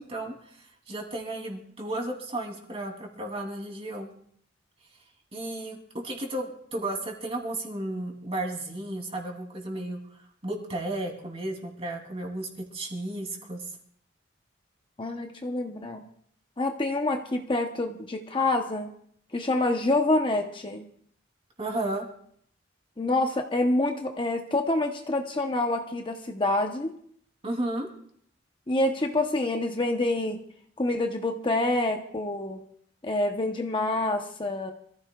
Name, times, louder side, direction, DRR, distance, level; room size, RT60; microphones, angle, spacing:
voice 1, 0.0-4.1 5.3-13.6 21.6-22.0 27.4-27.9, right 1 dB, 30° right, 1 dB, 3.0 m, -34 dB
voice 2, 15.0-16.0 16.6-18.9 19.3-20.8 23.0-26.9 28.7-30.4 30.8-32.6 33.0-34.7, left 2 dB, 25° left, 3 dB, 0.9 m, -27 dB
26.5 x 14.5 x 2.4 m, 0.64 s
head